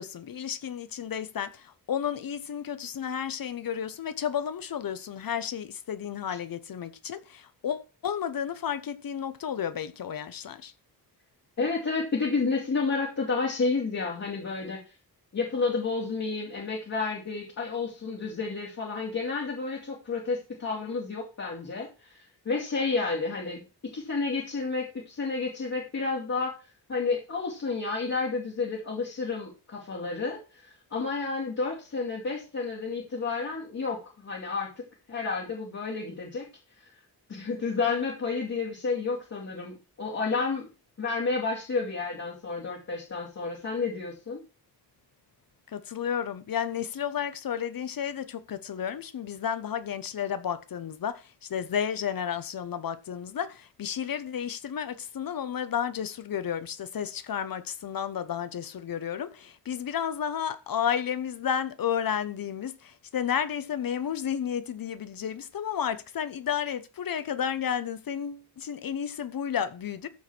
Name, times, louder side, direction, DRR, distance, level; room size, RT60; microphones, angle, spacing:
voice 1, 0.0-10.7 45.7-70.1, left 8 dB, 60° left, 1.0 m, -32 dB
voice 2, 11.6-14.8 15.3-26.5 26.9-36.5 37.3-40.7 41.0-44.4, left 4 dB, 40° left, 3.2 m, -31 dB
14.0 x 4.8 x 6.0 m
wide cardioid pair, 170°, 40 cm